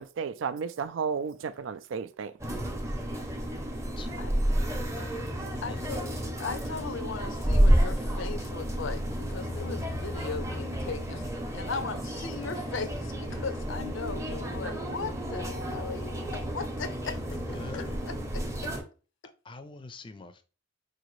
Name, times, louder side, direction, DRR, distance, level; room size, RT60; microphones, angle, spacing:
voice 1, 0.0-2.3, right 6 dB, 90° right, 0.4 m, -33 dB
sound 1, 2.4-18.8, equal, 15° right, 0.6 m, -30 dB
voice 2, 4.0-4.4 4.9-5.2 5.6-5.9 17.2-18.0 19.4-20.4, left 3 dB, 25° left, 0.4 m, -44 dB
voice 3, 5.6-17.2 17.7-18.4, left 5 dB, 90° left, 0.6 m, -38 dB
4.8 x 2.6 x 3.1 m
head